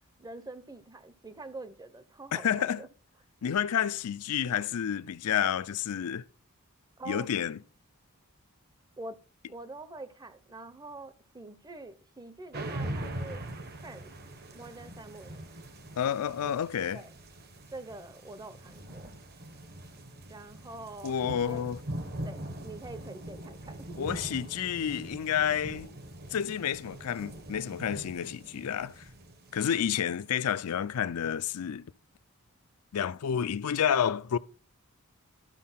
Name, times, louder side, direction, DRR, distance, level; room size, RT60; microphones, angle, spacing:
voice 1, 0.2-2.9 7.0-7.3 9.0-9.2 9.5-13.4 13.8-14.1 14.5-15.4 16.4-16.5 16.9-17.1 17.7-19.1 20.3-21.2 21.5-21.6 22.2-24.0, right 2 dB, 15° right, 0.6 m, -45 dB
voice 2, 2.3-2.8 3.4-6.2 7.1-7.6 16.0-17.0 21.0-21.8 24.0-25.9 26.3-29.0 29.5-31.8 32.9-34.4, left 8 dB, 80° left, 0.4 m, -30 dB
sound 1, 12.5-30.3, right 1 dB, 45° right, 1.0 m, -42 dB
12.0 x 4.6 x 5.6 m
head